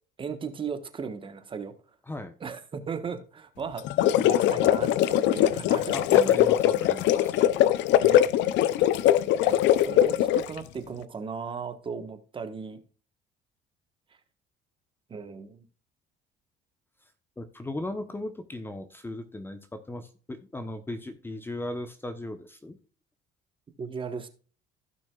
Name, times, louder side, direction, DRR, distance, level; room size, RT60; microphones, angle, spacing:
voice 1, 0.2-1.8 2.4-6.5 8.0-8.3 9.4-12.8 15.1-15.7 23.8-24.3, right 5 dB, 25° right, 8 dB, 1.3 m, -37 dB
sound 1, 3.8-10.6, left 12 dB, 70° left, 0.6 m, -21 dB
voice 2, 5.9-7.4 17.4-22.8, left 1 dB, 10° left, 8 dB, 0.9 m, -37 dB
16.0 x 6.1 x 2.4 m, 0.39 s
cardioid pair, 140°, 19 cm